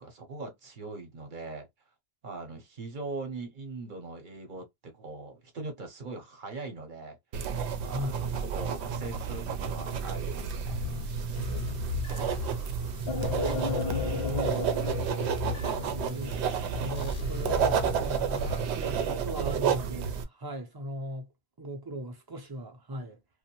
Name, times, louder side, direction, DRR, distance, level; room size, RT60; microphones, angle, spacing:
voice 1, 0.0-1.7 2.2-7.2 7.8-10.9, right 3 dB, 55° right, 0.9 m, -41 dB
sound 1, 7.3-20.2, right 7 dB, 90° right, 0.8 m, -31 dB
voice 2, 7.9-8.3 12.1-14.8 15.8-21.3 21.6-23.2, equal, 30° right, 0.5 m, -39 dB
sound 2, 10.7-18.7, left 6 dB, 65° left, 0.8 m, -38 dB
sound 3, 13.1-16.7, left 5 dB, 40° left, 0.4 m, -35 dB
2.6 x 2.2 x 2.8 m
omnidirectional pair, 1.1 m